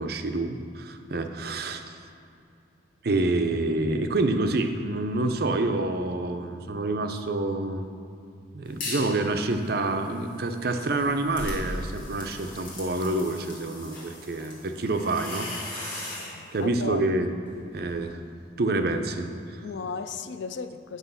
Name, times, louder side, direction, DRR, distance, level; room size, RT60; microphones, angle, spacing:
voice 1, 0.0-2.0 3.0-7.9 8.5-17.3 17.7-18.2 18.6-19.6, right 2 dB, 60° right, 6 dB, 0.6 m, -28 dB
sound 1, 4.3-5.1 7.2-7.4 8.2-9.0 9.9-10.0 10.4-13.2 13.7-13.8 16.4-18.6, equal, 10° left, 2.3 m, -42 dB
sound 2, 8.8-9.2 9.6-16.4, left 2 dB, 50° left, 2.2 m, -40 dB
voice 2, 16.3-17.0 19.6-21.0, left 5 dB, 80° left, 11 dB, 0.4 m, -36 dB
8.1 x 6.2 x 5.5 m, 2.5 s
head